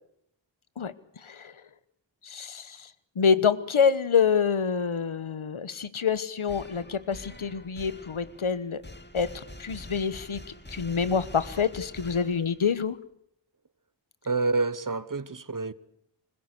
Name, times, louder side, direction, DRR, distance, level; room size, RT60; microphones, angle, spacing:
voice 1, 0.8-1.5 2.2-8.8 9.1-10.4 10.7-13.0, left 6 dB, 80° left, 1.2 m, -27 dB
sound 1, 6.5-12.8, left 1 dB, 20° left, 2.5 m, -45 dB
voice 2, 14.2-15.7, right 3 dB, 40° right, 1.0 m, -28 dB
25.5 x 16.0 x 8.2 m
wide cardioid pair, 50°, 48 cm